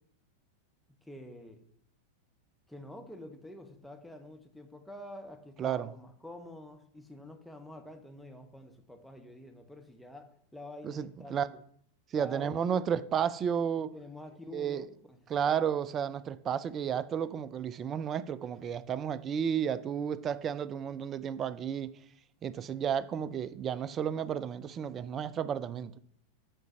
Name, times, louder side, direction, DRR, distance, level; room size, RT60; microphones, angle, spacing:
voice 1, 1.0-1.6 2.7-11.4 12.1-12.9 13.8-15.2, left 1 dB, ahead, 1.0 m, -47 dB
voice 2, 5.6-5.9 10.8-11.5 12.1-13.9 14.5-14.8 15.3-22.0 22.4-26.0, right 8 dB, 25° right, 0.4 m, -32 dB
7.8 x 3.9 x 6.0 m
figure-of-eight pair, 90°, 0 cm